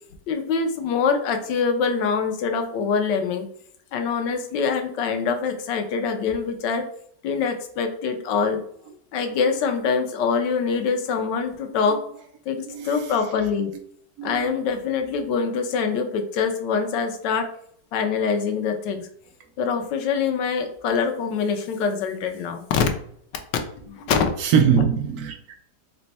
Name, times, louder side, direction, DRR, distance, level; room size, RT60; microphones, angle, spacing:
voice 1, 0.3-3.4 3.9-6.9 7.2-8.6 9.1-12.0 12.5-13.7 14.2-17.5 17.9-19.1 19.6-22.8 23.5-24.3, left 5 dB, 90° left, 1.3 m, -24 dB
voice 2, 12.7-13.1 14.2-14.4 24.4-25.6, right 7 dB, 70° right, 1.0 m, -22 dB
4.1 x 2.2 x 4.0 m
omnidirectional pair, 1.9 m